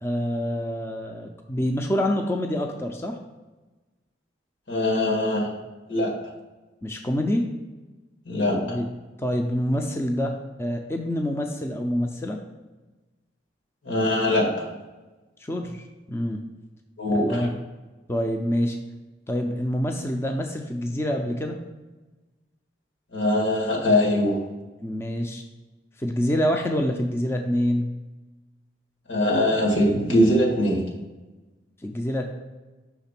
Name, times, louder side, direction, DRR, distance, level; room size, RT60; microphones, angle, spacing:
voice 1, 0.0-3.2 6.8-7.5 8.6-8.9 9.2-12.4 15.4-16.4 17.1-17.5 18.1-18.8 19.3-21.6 24.8-25.4 26.0-27.9 31.8-32.3, equal, 15° left, 3 dB, 0.4 m, -26 dB
voice 2, 4.7-5.5 5.9-6.1 8.3-8.8 13.8-14.5 17.0-17.5 23.1-24.4 29.1-30.8, left 1 dB, 85° left, -3 dB, 2.0 m, -22 dB
5.8 x 3.6 x 5.8 m, 1.2 s
head